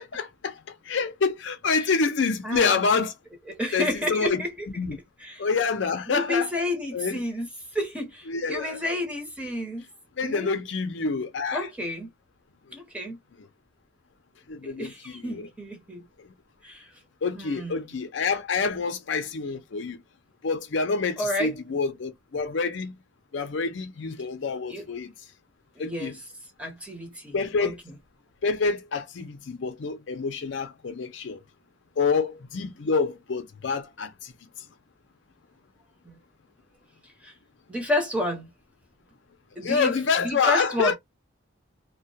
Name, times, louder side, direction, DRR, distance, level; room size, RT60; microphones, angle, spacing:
voice 1, 0.0-3.1 3.7-4.4 4.8-5.0 5.4-6.5 6.9-7.2 8.3-8.8 10.2-11.7 14.5-15.4 16.2-16.3 17.2-20.0 20.4-23.0 23.3-25.1 25.8-26.1 27.3-27.8 28.4-31.4 32.0-34.3 39.6-41.0, left 4 dB, 65° left, 0.5 m, -27 dB
voice 2, 2.4-2.8 3.5-4.7 5.2-5.4 6.1-9.9 10.2-10.5 11.5-12.1 12.7-13.2 14.6-16.0 16.6-16.9 17.3-17.9 21.2-21.5 24.7-24.8 25.8-26.2 26.6-27.7 36.0-36.2 37.2-37.3 37.7-38.5 39.6-39.9 40.2-41.0, left 1 dB, 5° right, 0.8 m, -31 dB
2.2 x 2.1 x 2.6 m
head